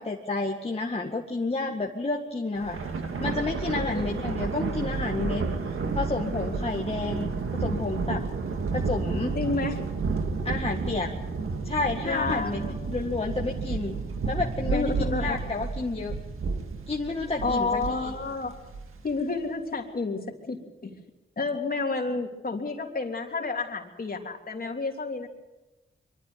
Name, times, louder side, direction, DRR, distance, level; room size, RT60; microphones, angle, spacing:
voice 1, 0.0-2.8 3.2-5.4 5.9-7.3 7.6-8.2 8.7-9.3 10.4-11.1 11.7-12.6 12.9-14.0 14.3-16.1 16.9-18.1, left 3 dB, 30° left, -1 dB, 2.0 m, -30 dB
Thunder, 2.6-19.2, right 4 dB, 90° right, 2.0 m, -31 dB
voice 2, 3.8-4.3 6.4-6.7 9.3-9.8 12.0-12.8 14.7-15.4 17.4-18.6 19.0-21.0 21.4-25.3, left 3 dB, 45° left, 2 dB, 3.3 m, -30 dB
23.5 x 13.0 x 9.4 m, 1.1 s
cardioid pair, 80°, 21 cm